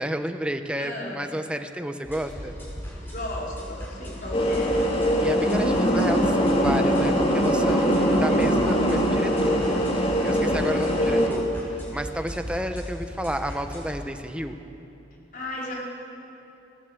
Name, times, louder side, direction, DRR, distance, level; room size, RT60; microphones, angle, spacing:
voice 1, 0.0-2.5 5.2-9.7 10.0-11.4 11.7-14.6, equal, 5° right, 6 dB, 1.0 m, -31 dB
voice 2, 0.8-1.2 3.1-4.8 15.3-15.7, left 1 dB, 50° left, -4 dB, 5.0 m, -35 dB
sound 1, 2.0-14.0, equal, 10° left, 5.5 m, -37 dB
sound 2, 4.3-11.3, equal, 30° left, 2.5 m, -22 dB
19.5 x 18.0 x 8.1 m, 2.9 s
head